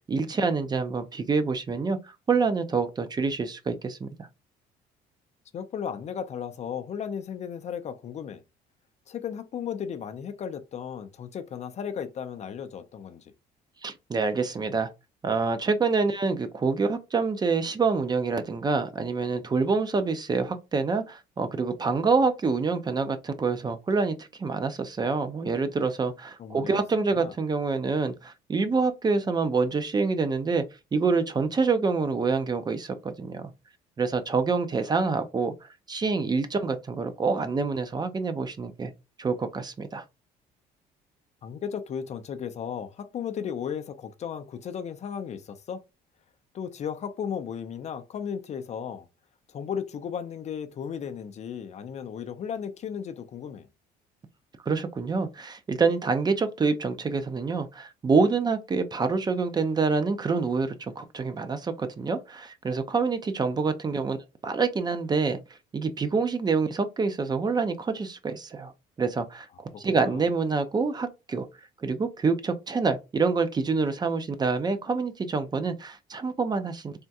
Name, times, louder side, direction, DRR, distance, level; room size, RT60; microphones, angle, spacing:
voice 1, 0.1-4.3 13.8-14.9 15.2-30.6 30.9-33.5 34.0-38.9 39.2-40.0 54.6-64.2 64.4-65.4 65.7-68.7 69.0-71.5 71.8-76.9, right 4 dB, 25° right, 0.5 m, -26 dB
voice 2, 5.5-8.4 9.1-13.3 26.4-26.8 27.1-27.3 41.4-45.8 46.5-49.1 49.5-53.7 69.7-70.3, left 7 dB, 40° left, 0.4 m, -35 dB
3.5 x 2.2 x 2.6 m
cardioid pair, 110°, 17 cm